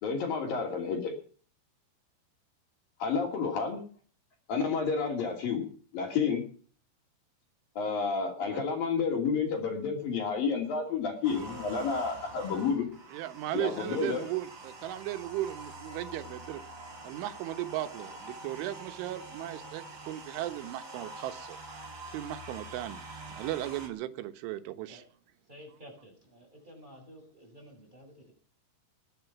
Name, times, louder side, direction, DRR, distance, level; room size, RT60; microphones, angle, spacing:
voice 1, 0.0-1.1 3.0-3.8 4.5-5.7 5.9-6.4 7.8-12.9 13.5-14.3, left 5 dB, 50° left, 3 dB, 4.2 m, -30 dB
sound 1, 11.2-23.9, right 2 dB, 35° right, 3.3 m, -46 dB
voice 2, 13.1-16.6 17.0-21.6 22.1-23.0 23.4-25.0, right 14 dB, 90° right, 10 dB, 3.6 m, -36 dB
voice 3, 25.5-28.3, equal, 10° right, 0 dB, 7.1 m, -52 dB
21.0 x 8.8 x 6.0 m, 0.43 s
omnidirectional pair, 5.4 m